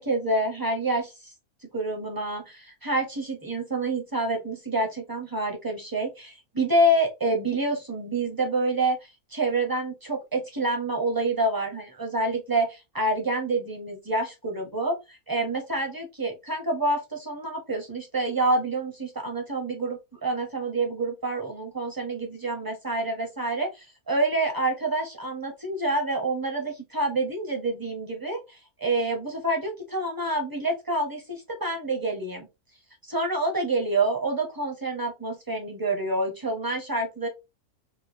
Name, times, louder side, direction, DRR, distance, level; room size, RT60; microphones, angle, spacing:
voice 1, 0.0-1.3 1.7-32.5 33.1-37.3, right 2 dB, 20° right, 2 dB, 0.6 m, -27 dB
4.1 x 2.3 x 2.5 m, 0.23 s
omnidirectional pair, 1.6 m